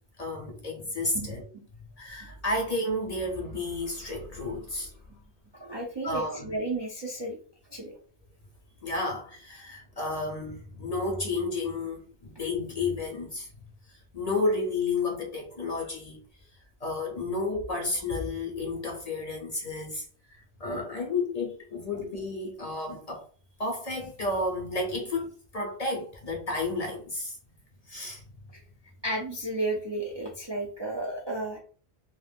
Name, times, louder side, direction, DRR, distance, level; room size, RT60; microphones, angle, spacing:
voice 1, 0.2-1.4 2.0-4.9 6.0-6.5 8.8-13.5 13.9-16.2 16.8-20.0 20.6-23.2 23.6-27.4 27.9-28.2, left 2 dB, 45° left, 0.6 m, -31 dB
voice 2, 5.5-7.4 7.7-7.9 21.9-22.0 29.0-31.6, right 2 dB, 40° right, 0.4 m, -33 dB
2.3 x 2.2 x 3.3 m
omnidirectional pair, 1.1 m